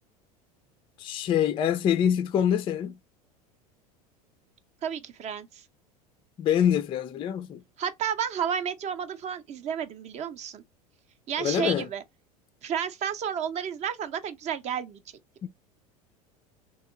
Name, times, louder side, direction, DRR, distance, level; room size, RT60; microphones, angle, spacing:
voice 1, 1.0-3.0 6.4-7.6 11.4-11.9 15.4-15.5, left 9 dB, 25° left, 0.4 m, -25 dB
voice 2, 4.8-5.6 7.8-10.6 11.3-12.0 12.6-15.0, right 8 dB, 35° right, 0.6 m, -31 dB
3.0 x 2.8 x 3.5 m
figure-of-eight pair, 80°, 20 cm